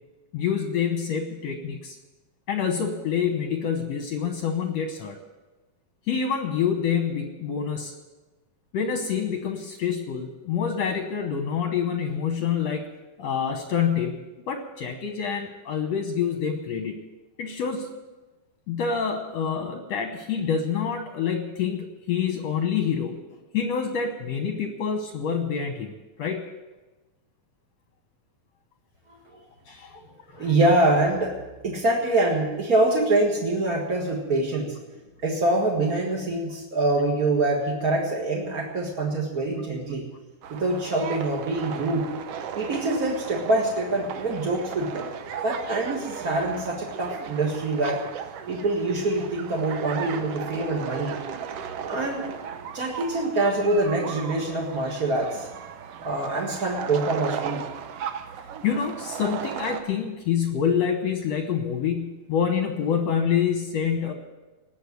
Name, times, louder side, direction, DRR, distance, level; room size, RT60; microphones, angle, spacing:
voice 1, 0.3-2.0 2.5-5.2 6.1-7.9 8.7-12.9 13.2-14.2 14.4-17.0 17.4-17.9 18.7-23.2 23.5-25.9 26.2-26.4 29.7-30.0 30.3-30.6 58.6-64.1, left 7 dB, 65° left, 5 dB, 1.8 m, -27 dB
voice 2, 29.1-29.4 30.4-31.3 31.6-34.7 35.2-40.1 40.5-42.1 42.5-45.1 45.4-48.0 48.5-51.2 51.9-52.3 52.7-55.5 56.0-57.6, right 2 dB, 40° right, -2 dB, 1.2 m, -25 dB
sound 1, 40.4-59.8, right 8 dB, 85° right, 1.4 m, -36 dB
19.5 x 6.7 x 9.5 m, 1.2 s
omnidirectional pair, 4.2 m